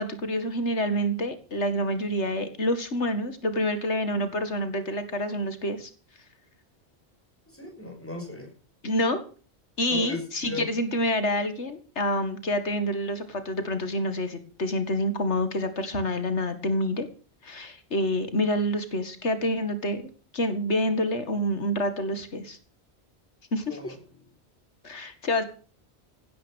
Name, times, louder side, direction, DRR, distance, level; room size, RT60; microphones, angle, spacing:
voice 1, 0.0-5.9 8.8-9.2 9.8-17.1 17.4-20.0 20.3-22.6 23.5-23.9 24.8-25.4, equal, 85° left, 9 dB, 2.4 m, -27 dB
voice 2, 7.5-8.5 9.9-10.6 23.7-24.0, left 2 dB, 10° left, 1 dB, 6.8 m, -37 dB
17.0 x 10.0 x 6.4 m, 0.39 s
omnidirectional pair, 1.1 m